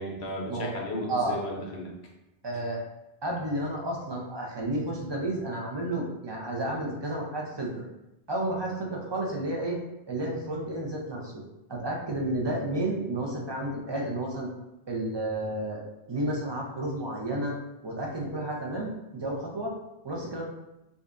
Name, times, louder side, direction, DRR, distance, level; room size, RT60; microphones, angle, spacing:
voice 1, 0.0-1.9 2.5-2.6, left 1 dB, 75° left, -1 dB, 1.0 m, -35 dB
voice 2, 2.4-2.8 3.2-7.8 8.3-9.8 10.1-11.4 11.7-14.5 14.9-15.8 16.1-17.5 17.8-19.7 20.0-20.4, right 1 dB, 30° right, -1 dB, 0.6 m, -31 dB
5.1 x 2.4 x 2.5 m, 0.90 s
omnidirectional pair, 1.1 m